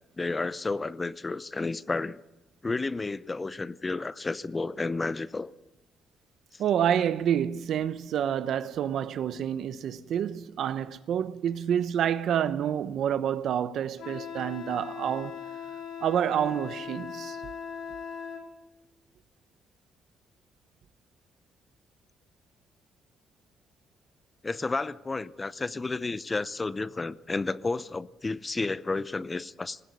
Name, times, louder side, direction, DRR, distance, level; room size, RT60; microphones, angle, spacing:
voice 1, 0.2-2.2 2.6-5.5 6.5-6.6 24.4-29.8, left 3 dB, 25° left, 0.7 m, -31 dB
voice 2, 6.6-15.4 16.0-17.4, right 9 dB, 70° right, 0.9 m, -28 dB
Wind instrument woodwind instrument, 14.0-18.5, left 7 dB, 85° left, 3.8 m, -39 dB
19.5 x 16.0 x 9.6 m
cardioid pair, 90°, 0 cm